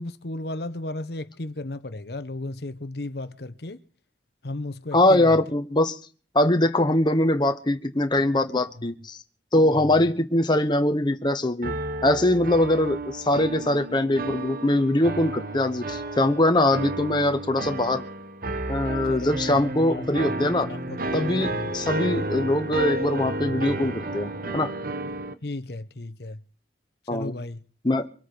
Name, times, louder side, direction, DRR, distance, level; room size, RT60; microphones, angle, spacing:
voice 1, 0.0-3.8 4.4-5.4 8.8-8.9 9.7-9.9 19.1-20.4 20.7-21.0 21.3-21.7 25.4-26.4 27.1-27.6, left 2 dB, 65° left, 1.0 m, -35 dB
voice 2, 4.9-6.0 6.3-9.2 9.5-11.7 12.0-18.0 18.7-20.7 21.1-24.7 27.1-27.3 27.8-28.1, left 1 dB, 25° left, 1.1 m, -22 dB
sound 1, 11.6-25.3, right 2 dB, 55° right, 1.1 m, -31 dB
24.0 x 8.3 x 6.0 m
head